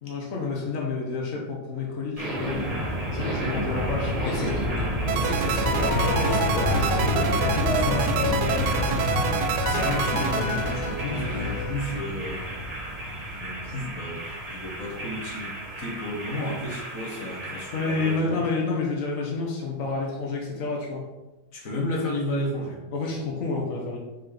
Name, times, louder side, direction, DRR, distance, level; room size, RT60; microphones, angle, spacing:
voice 1, 0.0-2.9 3.1-4.5 17.7-21.0 22.9-24.0, left 3 dB, 70° left, -2 dB, 0.7 m, -29 dB
sound 1, 2.2-18.2, equal, 50° right, 0.4 m, -30 dB
voice 2, 4.2-12.5 13.4-18.4 21.5-22.8, left 1 dB, 45° left, -1 dB, 1.2 m, -33 dB
sound 2, 5.1-11.4, right 8 dB, 85° right, 2.0 m, -28 dB
sound 3, 5.6-12.1, left 4 dB, 90° left, 2.3 m, -28 dB
6.7 x 6.6 x 4.1 m, 1.1 s
omnidirectional pair, 3.3 m